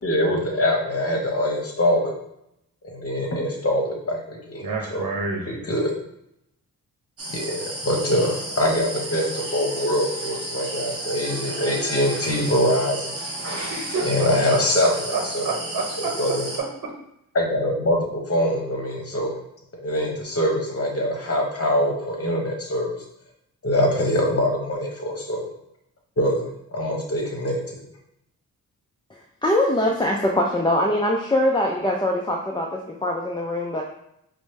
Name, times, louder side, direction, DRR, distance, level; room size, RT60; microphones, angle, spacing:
voice 1, 0.0-2.1 2.8-5.1 5.5-5.9 7.3-13.1 14.0-15.5 16.0-16.5 17.3-19.4 19.8-23.0 23.6-25.4 26.2-27.8, left 1 dB, 40° left, 0 dB, 1.0 m, -24 dB
voice 2, 4.6-5.6 13.7-16.2 16.8-16.9, right 4 dB, 70° right, -1 dB, 0.8 m, -28 dB
sound 1, 7.2-16.6, right 1 dB, 40° right, 1.2 m, -32 dB
voice 3, 29.1-33.8, left 1 dB, 15° left, -1 dB, 0.4 m, -23 dB
4.9 x 2.1 x 3.2 m, 0.78 s
cardioid pair, 75°, 35 cm